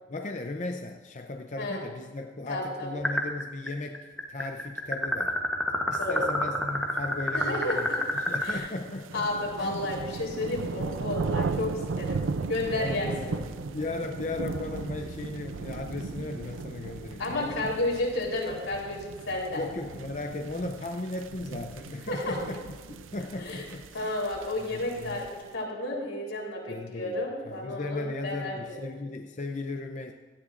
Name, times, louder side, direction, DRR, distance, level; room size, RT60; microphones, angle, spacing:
voice 1, 0.1-5.4 5.9-9.3 9.6-9.8 10.5-10.6 11.4-11.6 12.7-17.7 19.6-24.1 24.7-25.2 26.7-30.1, left 2 dB, 35° left, 4 dB, 0.6 m, -37 dB
voice 2, 2.5-2.9 6.0-6.3 7.3-8.0 8.4-8.7 9.1-12.2 12.5-13.4 17.2-19.6 22.1-22.4 23.4-23.6 23.9-28.8, left 2 dB, 90° left, -3 dB, 3.7 m, -32 dB
sound 1, 3.0-3.7 3.9-8.5, left 1 dB, 5° left, 1.0 m, -28 dB
sound 2, 7.9-25.5, right 4 dB, 80° right, 0.5 m, -37 dB
17.5 x 13.5 x 2.5 m, 1.4 s
head